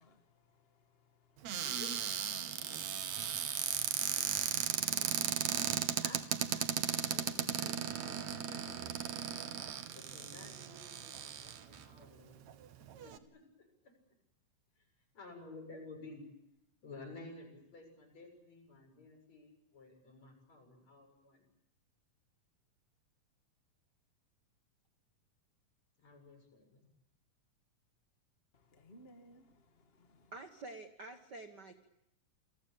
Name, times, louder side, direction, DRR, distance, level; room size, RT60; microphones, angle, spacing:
voice 1, 0.0-1.8 2.3-6.2 6.5-6.6 28.5-30.3, left 1 dB, 20° left, 5 dB, 1.7 m, -65 dB
Cupboard open or close, 1.4-11.8 12.5-12.6 12.8-13.2, right 9 dB, 65° right, 2.5 m, -36 dB
voice 2, 1.5-2.1 2.4-5.2 6.0-6.3 6.5-9.2 9.9-12.4 13.0-13.4 15.1-16.3 16.8-21.4 26.0-26.8, left 3 dB, 50° left, 3 dB, 8.4 m, -54 dB
voice 3, 30.3-31.9, right 2 dB, 45° right, 6 dB, 1.4 m, -48 dB
29.5 x 21.5 x 8.7 m, 0.81 s
omnidirectional pair, 3.8 m